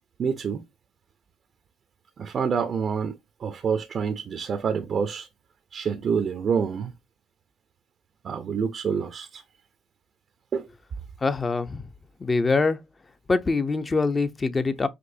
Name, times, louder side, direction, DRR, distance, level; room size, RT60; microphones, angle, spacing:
voice 1, 0.2-0.6 2.2-5.3 5.7-6.9 8.2-9.4 10.5-10.7, right 6 dB, 50° right, 0.6 m, -27 dB
voice 2, 11.2-11.8 12.2-12.8 13.3-14.9, left 3 dB, 30° left, 0.8 m, -24 dB
5.2 x 3.0 x 2.7 m
supercardioid pair, 70°, 0 cm